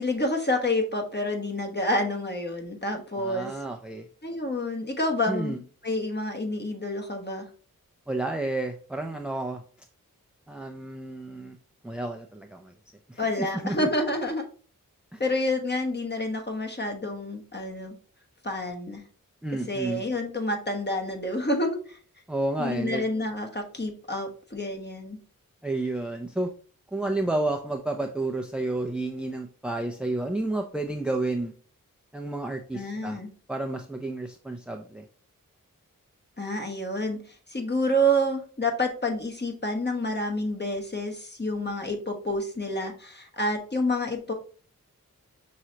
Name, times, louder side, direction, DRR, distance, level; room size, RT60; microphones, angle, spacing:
voice 1, 0.0-3.5 4.2-7.5 13.2-14.4 15.2-17.9 18.4-19.0 19.7-22.0 22.6-25.2 32.7-33.3 36.4-37.2 37.5-44.3, left 1 dB, 30° left, 3 dB, 1.2 m, -28 dB
voice 2, 3.2-4.1 5.3-5.6 8.1-9.6 10.5-11.6 11.8-12.7 13.1-13.9 15.1-15.2 19.4-20.0 22.3-23.0 25.6-26.5 26.9-31.5 32.1-33.2 33.5-35.1, right 2 dB, 5° right, 3 dB, 0.5 m, -31 dB
6.0 x 3.1 x 2.8 m, 0.41 s
cardioid pair, 40°, 34 cm